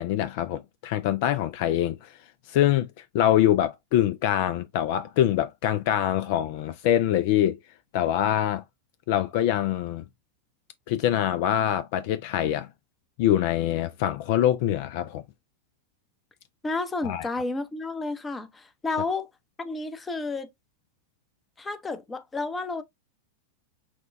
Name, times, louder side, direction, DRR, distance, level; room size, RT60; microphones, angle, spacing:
voice 1, 0.0-2.2 2.5-7.6 7.9-8.6 9.1-10.0 10.9-12.7 13.2-15.2 17.0-17.3, left 11 dB, 50° left, 0.3 m, -24 dB
voice 2, 16.6-19.3 19.6-20.5 21.6-22.8, left 3 dB, 15° left, 0.7 m, -31 dB
5.9 x 2.2 x 2.5 m
figure-of-eight pair, 90°, 0 cm